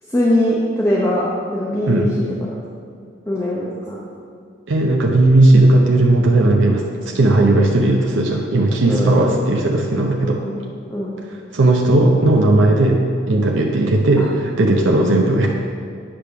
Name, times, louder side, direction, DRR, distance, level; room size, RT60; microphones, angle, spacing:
voice 1, 0.1-2.5 3.3-4.0 8.9-9.2 10.2-10.6 10.9-11.2 14.2-14.3 14.9-15.1, left 1 dB, 15° left, -5 dB, 0.7 m, -21 dB
voice 2, 4.7-10.4 11.3-13.0 13.3-15.5, right 2 dB, 85° right, 0 dB, 0.6 m, -16 dB
8.6 x 3.4 x 5.8 m, 2.4 s
head